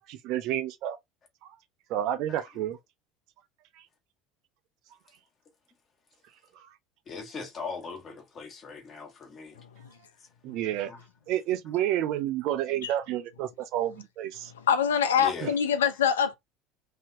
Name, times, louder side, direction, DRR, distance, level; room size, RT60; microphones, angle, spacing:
voice 1, 0.1-1.0 1.4-1.5 1.9-2.8 6.6-6.7 10.4-10.9 11.3-14.5 15.4-15.5, right 12 dB, 60° right, 0.5 m, -30 dB
voice 2, 7.1-9.6 10.9-11.0 15.2-15.5, left 5 dB, 40° left, 1.5 m, -39 dB
voice 3, 14.7-16.3, left 8 dB, 85° left, 0.5 m, -24 dB
3.2 x 2.8 x 2.6 m
hypercardioid pair, 75°, 0 cm